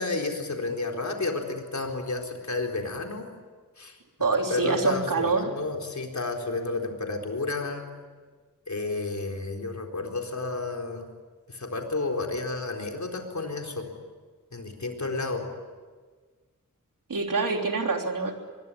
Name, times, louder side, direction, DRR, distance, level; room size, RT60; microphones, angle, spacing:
voice 1, 0.0-3.3 3.8-4.0 4.5-7.8 8.7-11.0 11.5-13.9 14.5-15.4, left 3 dB, 60° left, 2 dB, 4.2 m, -31 dB
voice 2, 4.2-5.5 17.1-18.4, right 4 dB, 75° right, 3 dB, 3.4 m, -26 dB
24.0 x 21.5 x 9.9 m, 1.5 s
wide cardioid pair, 85°, 33 cm